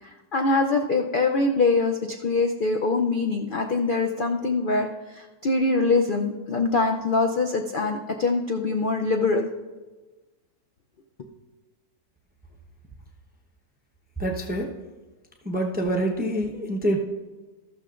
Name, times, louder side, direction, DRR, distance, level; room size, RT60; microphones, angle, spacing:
voice 1, 0.0-9.5, left 3 dB, 70° left, 3 dB, 0.4 m, -24 dB
voice 2, 14.2-14.7 15.4-17.0, right 1 dB, 10° right, 2 dB, 0.4 m, -26 dB
13.5 x 12.5 x 2.5 m, 1.2 s
omnidirectional pair, 1.7 m